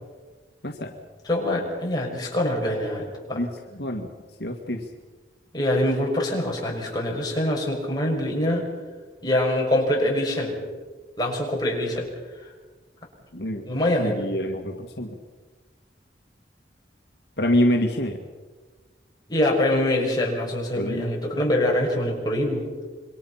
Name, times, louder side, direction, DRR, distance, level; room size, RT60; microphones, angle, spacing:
voice 1, 1.3-3.4 5.5-8.6 9.2-10.6 11.2-12.1 13.7-14.2 19.3-22.6, left 1 dB, 20° left, -1 dB, 6.0 m, -24 dB
voice 2, 3.3-4.1 4.4-4.9 13.3-13.7 14.0-15.2 17.4-18.2 20.7-21.1, left 1 dB, 65° left, 2 dB, 1.9 m, -26 dB
27.5 x 23.0 x 5.8 m, 1.3 s
head